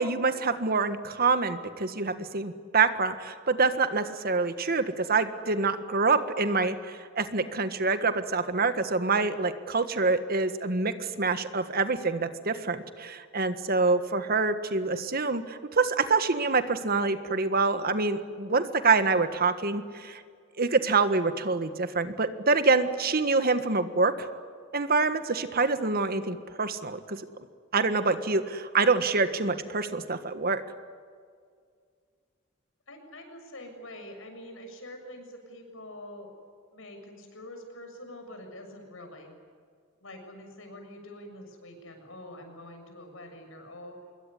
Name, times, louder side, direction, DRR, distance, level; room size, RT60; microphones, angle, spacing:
voice 1, 0.0-20.2 20.6-24.3 24.7-27.2 27.7-30.6, right 4 dB, 50° right, 10 dB, 1.6 m, -26 dB
voice 2, 32.9-36.3 36.7-39.4 40.0-44.0, left 1 dB, 75° left, 5 dB, 7.0 m, -45 dB
26.0 x 22.0 x 9.8 m, 2.1 s
head